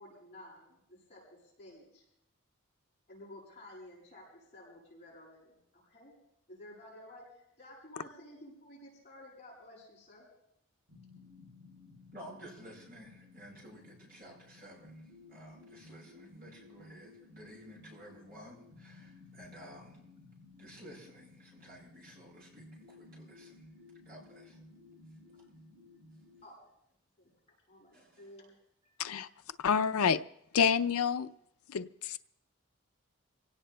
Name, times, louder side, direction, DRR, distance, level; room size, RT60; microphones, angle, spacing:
voice 1, 0.0-2.0 3.1-6.1 6.5-10.3 26.4-26.6 27.2-27.3 27.7-28.5 28.8-29.0, left 1 dB, 30° left, -5 dB, 7.5 m, -53 dB
sound 1, 10.9-26.4, left 2 dB, 90° right, 6.9 m, -56 dB
voice 2, 12.1-20.0 20.6-23.7 24.1-24.6 25.3-25.5 27.9-28.4, equal, 45° right, -4 dB, 7.6 m, -53 dB
voice 3, 29.6-30.2 30.5-31.3 31.7-32.2, left 6 dB, 90° left, 12 dB, 0.5 m, -28 dB
27.5 x 17.5 x 2.3 m, 0.78 s
head